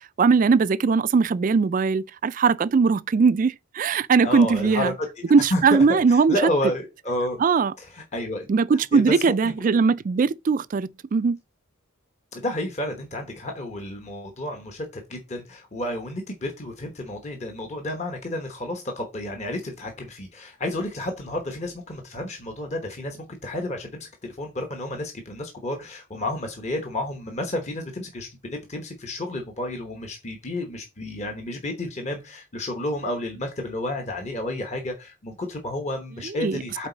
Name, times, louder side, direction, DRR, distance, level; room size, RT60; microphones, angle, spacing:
voice 1, 0.2-4.9 5.3-6.4 7.4-7.7 8.5-11.4 36.3-36.6, right 5 dB, 40° right, 0.3 m, -20 dB
voice 2, 4.2-5.1 5.4-7.4 7.8-9.7 12.3-23.2 23.4-36.9, left 1 dB, 35° left, 1.1 m, -31 dB
8.8 x 4.0 x 3.9 m
head